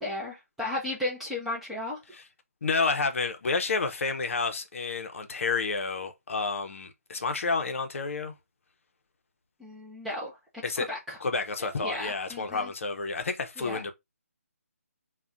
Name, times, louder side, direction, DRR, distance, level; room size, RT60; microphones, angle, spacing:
voice 1, 0.0-2.0 9.6-11.2 11.6-12.7 13.6-13.8, left 1 dB, ahead, 0.3 m, -35 dB
voice 2, 2.6-8.3 10.6-10.9 11.2-13.9, left 4 dB, 55° left, 0.6 m, -30 dB
2.3 x 2.1 x 3.7 m
hypercardioid pair, 165°, 8 cm